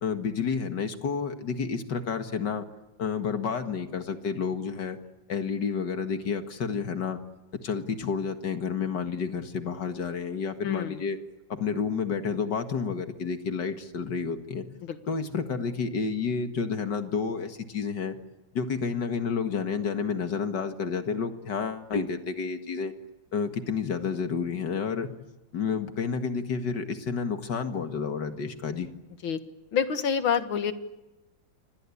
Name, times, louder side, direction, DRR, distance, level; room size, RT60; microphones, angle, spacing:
voice 1, 0.0-2.7 3.0-5.0 5.3-7.2 7.5-11.2 11.5-14.7 15.1-18.2 18.5-22.9 23.3-25.1 25.5-28.9, left 5 dB, 60° left, 7 dB, 2.4 m, -30 dB
voice 2, 10.6-11.0 14.8-15.0 29.2-29.4 29.7-30.7, left 7 dB, 85° left, 9 dB, 2.4 m, -27 dB
27.5 x 25.0 x 8.6 m, 1.0 s
omnidirectional pair, 2.2 m